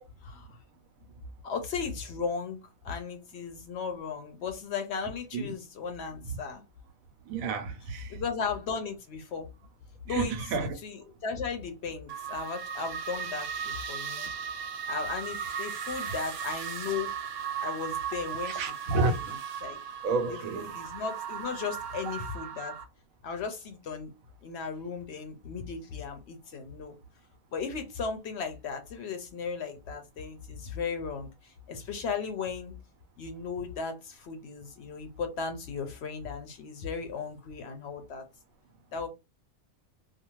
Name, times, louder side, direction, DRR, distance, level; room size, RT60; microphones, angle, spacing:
voice 1, 1.4-6.6 8.1-9.5 10.1-10.3 10.8-14.3 14.9-17.1 17.6-18.7 19.0-19.2 19.6-19.8 20.3-22.7 23.2-24.1 24.4-26.9 27.5-32.8 33.2-38.2 38.9-39.1, left 5 dB, 65° left, 0.7 m, -36 dB
voice 2, 7.3-8.2 10.1-10.8 18.4-19.4 20.0-20.8, right 3 dB, 90° right, 1.0 m, -30 dB
sound 1, 12.1-22.8, right 7 dB, 65° right, 0.6 m, -36 dB
2.5 x 2.3 x 2.9 m
omnidirectional pair, 1.4 m